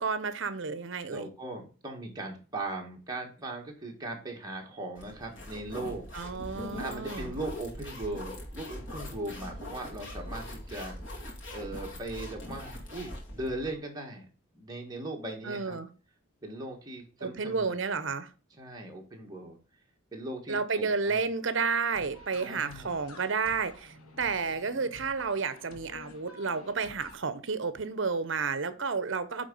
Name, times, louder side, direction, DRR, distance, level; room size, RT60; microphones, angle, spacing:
voice 1, 0.0-1.3 6.1-7.3 15.4-15.9 17.2-18.3 20.5-29.5, right 5 dB, 60° right, 0.8 m, -31 dB
voice 2, 1.1-6.1 6.8-11.2 11.5-14.3 14.5-15.8 16.4-18.1 18.6-19.6 20.1-21.2 22.4-23.0, right 2 dB, 20° right, 1.6 m, -39 dB
sound 1, 5.0-13.7, left 1 dB, 60° left, 2.2 m, -42 dB
sound 2, 21.9-27.2, left 2 dB, 85° left, 1.7 m, -51 dB
9.0 x 3.6 x 5.3 m
head